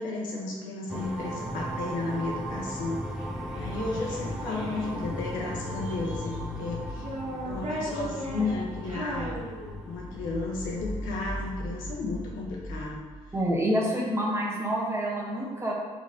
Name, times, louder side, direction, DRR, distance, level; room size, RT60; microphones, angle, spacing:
voice 1, 0.0-3.0 3.5-7.1 7.4-9.4 9.8-13.0 13.8-14.1, left 3 dB, 85° left, -2 dB, 0.9 m, -33 dB
sound 1, 0.9-11.4, right 1 dB, 5° right, 0.6 m, -38 dB
sound 2, 3.0-13.5, left 2 dB, 50° left, 0.7 m, -39 dB
Child speech kid speaking, 3.2-4.9 5.6-6.5 6.9-10.1, right 1 dB, 50° right, 1.5 m, -38 dB
voice 2, 13.3-15.7, equal, 20° right, -3 dB, 1.3 m, -27 dB
3.9 x 3.2 x 3.8 m, 1.5 s
supercardioid pair, 55°, 14 cm